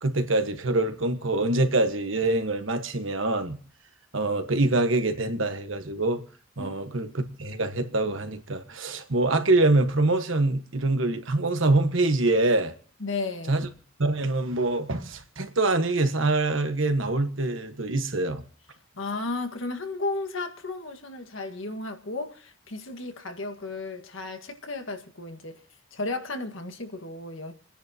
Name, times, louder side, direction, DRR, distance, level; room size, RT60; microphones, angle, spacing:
voice 1, 0.0-3.6 4.1-6.2 6.6-12.7 13.5-13.7 14.0-18.4, right 2 dB, 75° right, 1.5 m, -25 dB
voice 2, 6.6-7.1 13.0-13.7 18.9-25.6 25.9-27.5, left 3 dB, 80° left, 1.8 m, -34 dB
28.5 x 10.0 x 2.9 m
head